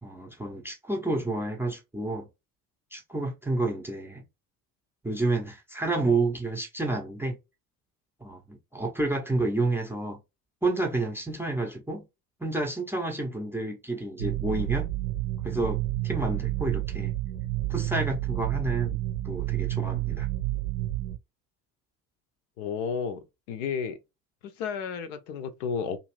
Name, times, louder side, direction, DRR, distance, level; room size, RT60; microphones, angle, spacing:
voice 1, 0.0-2.3 2.9-4.2 5.0-7.4 8.2-10.2 10.6-12.0 12.4-14.9 15.4-17.1 17.7-19.0 19.2-20.3, right 2 dB, 5° right, 0.6 m, -30 dB
sound 1, 14.2-21.2, right 16 dB, 65° right, 0.6 m, -30 dB
voice 2, 22.6-24.0 24.4-26.0, left 6 dB, 55° left, 0.6 m, -32 dB
2.5 x 2.5 x 3.1 m
figure-of-eight pair, 65°, 48 cm